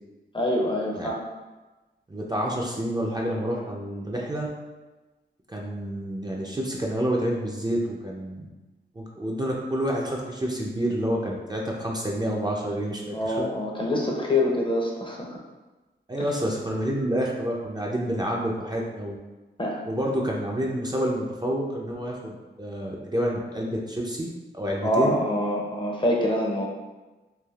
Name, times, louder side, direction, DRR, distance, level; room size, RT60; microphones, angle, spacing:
voice 1, 0.3-1.2 13.1-15.4 16.2-16.3 19.6-19.8 24.8-26.7, left 1 dB, 25° left, -1 dB, 0.6 m, -25 dB
voice 2, 2.1-4.5 5.5-8.5 9.0-13.5 16.1-19.2 19.8-24.3 24.5-25.2, equal, 20° right, -2 dB, 0.4 m, -28 dB
3.3 x 2.4 x 2.3 m, 1.2 s
wide cardioid pair, 70°, 19 cm